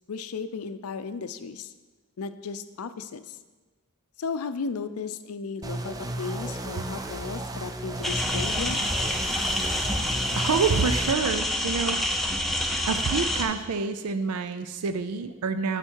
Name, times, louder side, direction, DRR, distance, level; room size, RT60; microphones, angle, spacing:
voice 1, 0.1-1.7 2.2-3.4 4.2-8.8, left 5 dB, 75° left, 11 dB, 0.5 m, -35 dB
sound 1, 5.6-11.1, right 1 dB, 15° right, 0.4 m, -34 dB
sound 2, 8.0-13.4, left 1 dB, ahead, 0.8 m, -27 dB
voice 2, 10.4-12.0 12.9-15.8, right 5 dB, 85° right, 10 dB, 0.5 m, -27 dB
9.7 x 6.6 x 4.6 m, 1.3 s
head